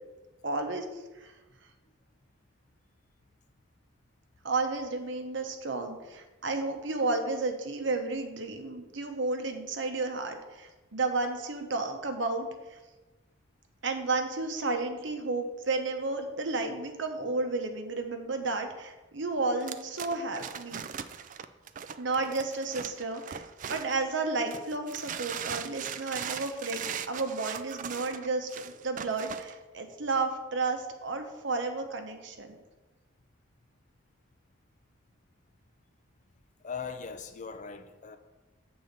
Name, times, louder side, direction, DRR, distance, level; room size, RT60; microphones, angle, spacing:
voice 1, 0.4-1.3 4.4-12.8 13.8-20.9 22.0-32.5, right 3 dB, 65° right, 1.0 m, -32 dB
sound 1, 19.6-24.1 24.5-29.5, right 8 dB, 40° right, 0.3 m, -39 dB
voice 2, 36.6-38.2, left 6 dB, 40° left, 0.5 m, -39 dB
7.7 x 4.0 x 6.6 m
head